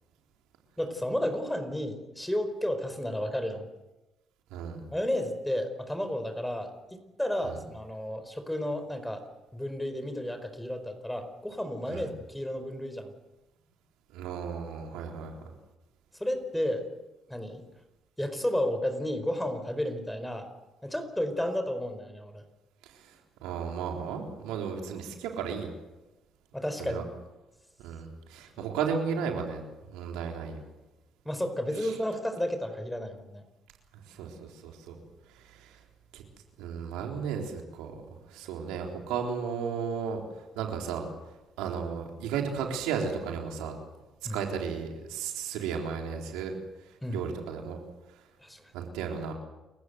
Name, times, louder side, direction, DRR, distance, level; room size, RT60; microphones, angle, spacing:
voice 1, 0.8-3.7 4.9-9.3 9.5-13.1 16.2-16.9 17.3-17.6 18.2-20.5 20.8-22.4 26.5-27.0 28.6-28.7 31.2-33.4 44.2-44.5 47.0-47.3 48.4-48.6, left 1 dB, 5° left, 9 dB, 4.6 m, -32 dB
voice 2, 14.1-15.3 22.8-25.7 26.8-27.0 27.8-29.6 29.9-30.6 31.8-31.9 34.1-35.0 35.3-35.8 36.1-36.2 36.6-37.9 38.3-40.2 40.6-41.0 41.6-43.7 44.3-46.6 47.1-47.8 48.7-49.3, right 6 dB, 90° right, 2 dB, 3.8 m, -34 dB
29.0 x 15.5 x 8.1 m, 1.1 s
supercardioid pair, 70°, 0 cm